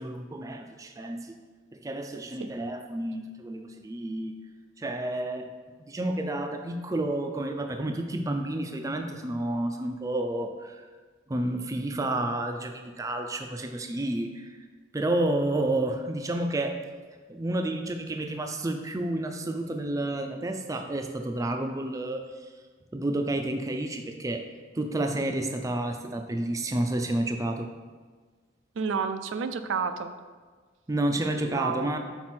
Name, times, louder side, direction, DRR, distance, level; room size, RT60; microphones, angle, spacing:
voice 1, 0.0-1.4 1.7-4.3 4.8-5.5 5.9-10.9 11.3-14.6 14.9-16.8 17.3-22.2 22.9-24.4 24.7-27.7 30.9-32.0, right 1 dB, 20° right, 4 dB, 0.4 m, -30 dB
voice 2, 28.8-30.1 31.3-31.9, right 5 dB, 85° right, 9 dB, 0.4 m, -30 dB
6.0 x 4.2 x 4.3 m, 1.4 s
head